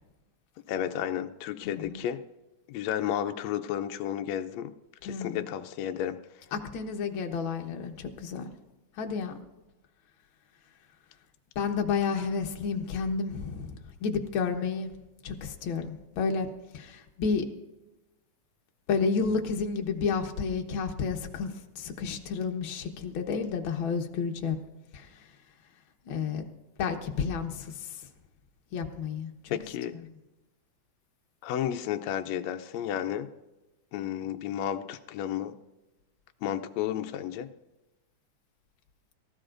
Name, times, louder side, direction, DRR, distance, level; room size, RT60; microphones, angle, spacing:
voice 1, 0.7-2.2 2.7-4.7 5.0-6.2 29.5-29.9 31.4-33.3 33.9-35.6 36.4-37.5, left 10 dB, 75° left, 7 dB, 1.7 m, -32 dB
voice 2, 1.7-2.0 5.0-5.5 6.5-8.5 9.0-9.4 11.5-14.9 15.2-17.5 18.9-24.6 24.9-25.1 26.0-26.4 26.8-28.0 28.7-29.5, left 5 dB, 55° left, 3 dB, 1.5 m, -31 dB
24.0 x 14.5 x 2.6 m, 1.0 s
omnidirectional pair, 3.5 m